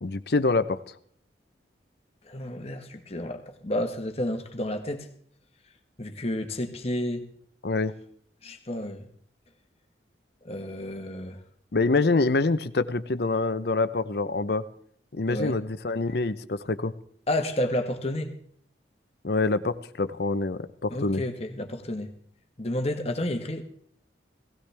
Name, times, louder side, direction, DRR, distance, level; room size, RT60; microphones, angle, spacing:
voice 1, 0.0-0.8 7.6-7.9 11.7-14.7 15.1-16.9 19.2-21.2, left 3 dB, 55° left, 13 dB, 0.7 m, -26 dB
voice 2, 2.3-5.1 6.0-7.2 8.4-9.1 10.4-11.4 15.3-15.6 17.3-18.3 20.9-22.1 22.6-23.6, left 1 dB, 35° left, 6 dB, 1.3 m, -31 dB
17.5 x 16.0 x 3.4 m, 0.63 s
head